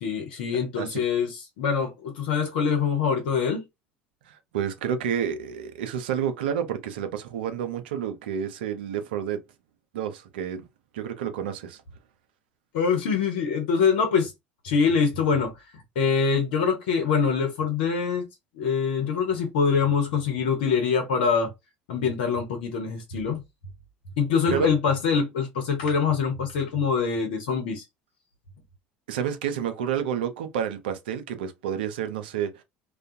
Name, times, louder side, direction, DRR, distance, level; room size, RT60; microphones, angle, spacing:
voice 1, 0.0-3.6 12.7-14.3 14.6-15.5 16.0-18.3 18.6-21.5 21.9-23.4 24.2-27.8, left 6 dB, 75° left, 0.7 m, -24 dB
voice 2, 4.3-9.4 9.9-10.6 10.9-11.8 24.5-24.7 29.1-32.6, right 8 dB, 80° right, 0.5 m, -29 dB
2.3 x 2.2 x 2.6 m
hypercardioid pair, 70°, 5 cm